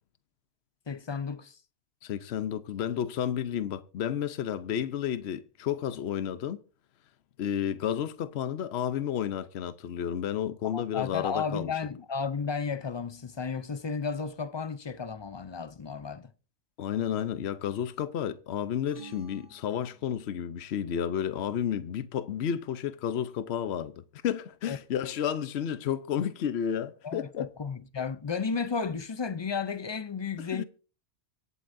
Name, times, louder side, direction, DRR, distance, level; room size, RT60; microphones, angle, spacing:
voice 1, 0.9-1.6 10.6-16.3 24.7-24.8 27.0-30.6, left 5 dB, 40° left, 0.3 m, -33 dB
voice 2, 2.0-6.6 7.4-11.7 16.8-27.5 30.4-30.6, left 9 dB, 65° left, 1.0 m, -31 dB
sound 1, 18.9-20.5, right 5 dB, 50° right, 1.6 m, -51 dB
24.5 x 8.1 x 2.6 m
omnidirectional pair, 1.2 m